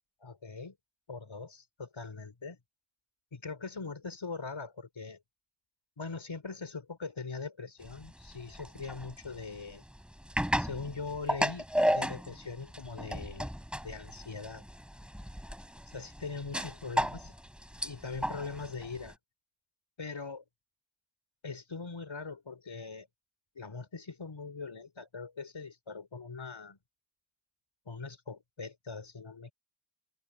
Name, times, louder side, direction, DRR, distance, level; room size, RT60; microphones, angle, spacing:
voice 1, 0.2-0.8 1.1-2.6 3.3-5.2 6.0-9.8 10.6-11.7 11.9-13.5 13.8-14.6 15.9-17.3 17.8-19.2 20.0-20.4 21.4-23.1 23.5-26.8 27.9-29.5, left 4 dB, 85° left, 4.7 m, -41 dB
sound 1, 7.8-19.1, equal, ahead, 3.6 m, -34 dB
wide cardioid pair, 50°, 46 cm